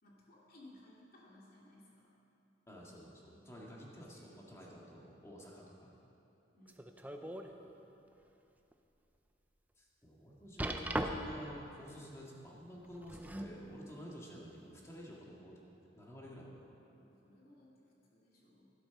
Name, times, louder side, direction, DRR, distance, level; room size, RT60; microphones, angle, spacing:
voice 1, 0.0-2.1 3.3-3.9 4.1-4.6 6.5-7.3 16.9-18.7, left 1 dB, 55° left, -4 dB, 2.9 m, -61 dB
voice 2, 2.7-5.9 7.4-7.8 9.8-15.5 15.9-16.7, equal, 15° left, -4 dB, 2.1 m, -51 dB
sound 1, 6.7-7.5 8.0-8.1 8.7-8.8 10.6-11.5 12.8-13.6 14.5-14.6, right 1 dB, 10° right, 0.6 m, -38 dB
12.5 x 12.0 x 5.9 m, 2.9 s
head